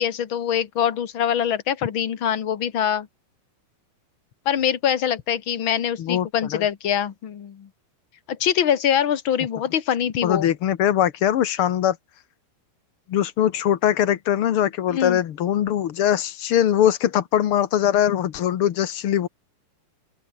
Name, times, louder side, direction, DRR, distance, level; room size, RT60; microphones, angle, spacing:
voice 1, 0.0-3.1 4.4-7.7 8.3-10.5 14.9-15.2, left 9 dB, 50° left, 1.6 m, -23 dB
voice 2, 10.2-12.0 13.1-19.3, left 10 dB, 85° left, 1.2 m, -21 dB
open air
omnidirectional pair, 4.3 m